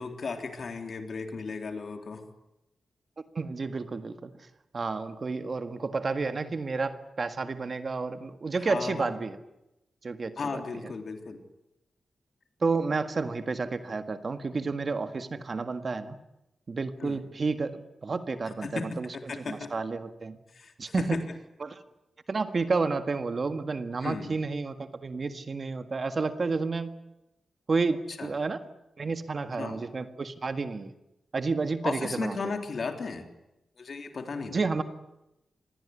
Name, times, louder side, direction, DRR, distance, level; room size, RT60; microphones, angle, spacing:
voice 1, 0.0-2.2 8.6-9.2 10.4-11.4 17.0-17.3 18.6-19.7 20.5-21.4 24.0-24.3 28.1-28.3 29.5-29.8 31.8-33.3 33.8-34.6, left 4 dB, 50° left, 5 dB, 3.6 m, -35 dB
voice 2, 3.4-4.3 4.7-9.4 10.0-10.9 12.6-16.2 16.7-19.1 19.5-20.4 20.8-21.0 21.6-21.8 22.3-26.9 27.7-28.6 29.0-30.9 31.3-32.5 34.5-34.8, right 4 dB, 40° right, 9 dB, 1.7 m, -31 dB
26.5 x 21.5 x 9.7 m, 0.90 s
wide cardioid pair, 155°, 0 cm